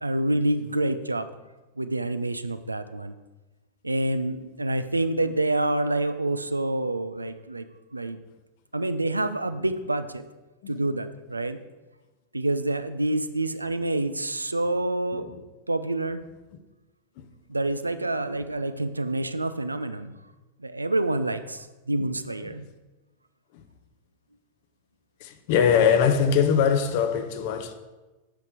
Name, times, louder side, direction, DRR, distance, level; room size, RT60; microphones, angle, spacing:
voice 1, 0.0-1.3 1.8-3.1 3.8-7.6 7.9-8.2 8.7-10.2 10.7-11.6 12.3-15.3 15.7-16.2 17.5-20.1 20.6-22.7, right 2 dB, 85° right, 0.4 m, -27 dB
voice 2, 25.2-27.7, left 7 dB, 50° left, 0.8 m, -22 dB
8.2 x 5.9 x 4.8 m
figure-of-eight pair, 90°, 0 cm